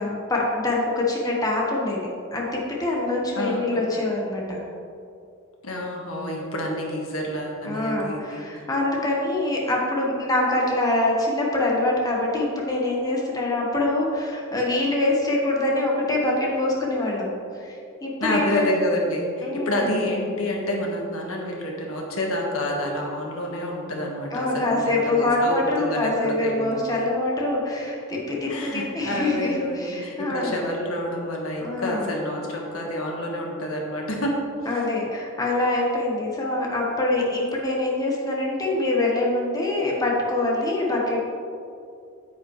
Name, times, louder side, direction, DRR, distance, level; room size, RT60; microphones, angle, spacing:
voice 1, 0.0-2.0 2.3-4.6 7.6-18.7 19.4-19.9 24.3-30.5 31.6-32.1 34.6-41.2, left 2 dB, 20° left, -3 dB, 1.3 m, -24 dB
voice 2, 3.3-3.8 5.6-8.6 18.2-26.7 28.5-34.4, left 1 dB, 80° left, -1 dB, 1.6 m, -28 dB
9.2 x 9.1 x 3.2 m, 2.5 s
head